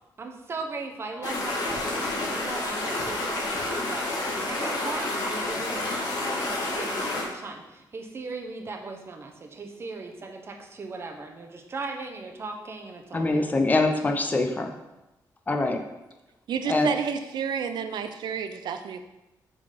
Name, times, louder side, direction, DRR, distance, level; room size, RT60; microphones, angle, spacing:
voice 1, 0.2-4.1 4.4-5.9 6.5-13.4, right 3 dB, 35° right, 4 dB, 0.9 m, -38 dB
sound 1, 1.2-7.2, left 2 dB, 60° left, 2.0 m, -29 dB
voice 2, 13.1-14.7 15.5-15.8 16.7-16.9, left 2 dB, 20° left, 4 dB, 0.7 m, -24 dB
voice 3, 16.5-19.1, right 7 dB, 80° right, 8 dB, 0.5 m, -30 dB
7.4 x 4.0 x 5.0 m, 0.98 s
wide cardioid pair, 150°, 7 cm